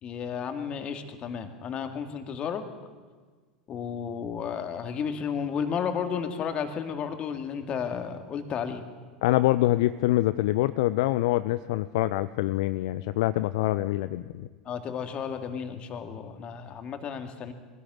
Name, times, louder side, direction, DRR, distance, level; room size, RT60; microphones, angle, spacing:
voice 1, 0.0-2.7 3.7-8.9 14.6-17.5, left 7 dB, 35° left, 7 dB, 2.2 m, -33 dB
voice 2, 9.2-14.5, left 16 dB, 55° left, 15 dB, 0.6 m, -25 dB
23.0 x 16.5 x 7.7 m, 1.4 s
figure-of-eight pair, 80°, 3 cm